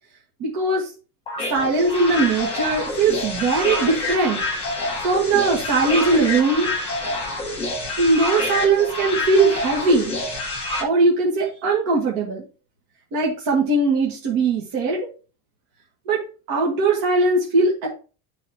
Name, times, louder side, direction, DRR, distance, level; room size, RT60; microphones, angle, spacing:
voice 1, 0.4-0.9 1.5-4.4 5.0-6.7 8.0-10.1 10.8-12.4 13.1-15.1 16.1-16.2 16.5-17.9, right 3 dB, 55° right, -3 dB, 1.6 m, -20 dB
sound 1, 1.3-10.8, left 2 dB, 15° left, 1.4 m, -27 dB
10.0 x 4.0 x 2.9 m, 0.36 s
cardioid pair, 175°, 42 cm